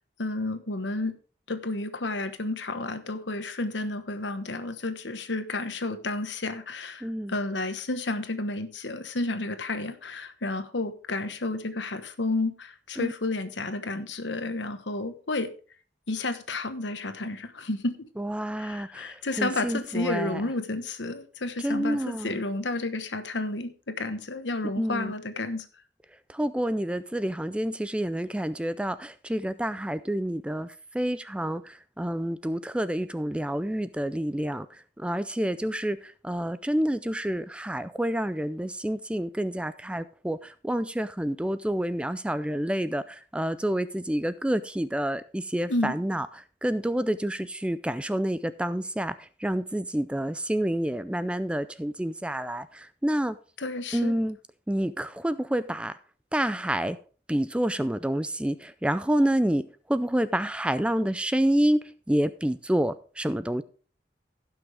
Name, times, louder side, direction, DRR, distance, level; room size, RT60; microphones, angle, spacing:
voice 1, 0.2-1.1 1.5-15.5 16.1-18.1 18.6-25.7 45.7-46.0 53.6-54.1, left 2 dB, 90° left, 1.2 m, -31 dB
voice 2, 7.0-7.3 13.0-13.1 18.2-20.4 21.6-22.4 24.8-25.1 26.3-34.7 35.0-46.3 46.6-53.4 53.9-54.4 54.7-55.9 56.3-57.0 57.3-63.6, right 1 dB, 5° right, 0.4 m, -28 dB
16.0 x 6.2 x 3.4 m
head